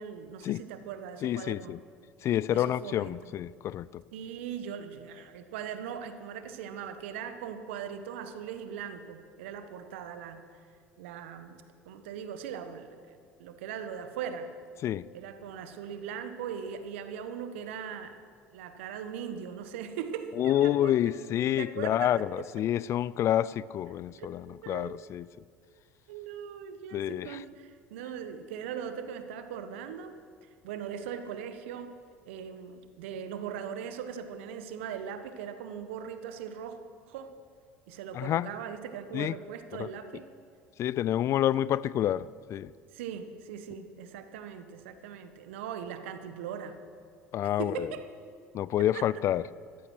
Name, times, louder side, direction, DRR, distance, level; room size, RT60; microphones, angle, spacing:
voice 1, 0.0-1.7 2.5-3.1 4.1-10.4 11.0-14.5 15.1-18.2 18.5-21.0 21.6-22.5 24.2-24.3 24.6-24.9 26.1-30.1 30.6-31.9 32.2-36.8 37.1-37.3 37.9-40.3 42.9-46.8 47.6-48.0 48.9-49.0, right 8 dB, 70° right, 1.3 m, -40 dB
voice 2, 1.2-1.8 2.2-4.0 14.8-15.0 20.4-25.3 26.9-27.4 38.1-38.5 39.1-39.4 39.8-39.9 40.8-42.7 47.3-47.9 48.5-49.4, left 11 dB, 45° left, 0.4 m, -28 dB
14.5 x 14.0 x 6.3 m
hypercardioid pair, 70°, 7 cm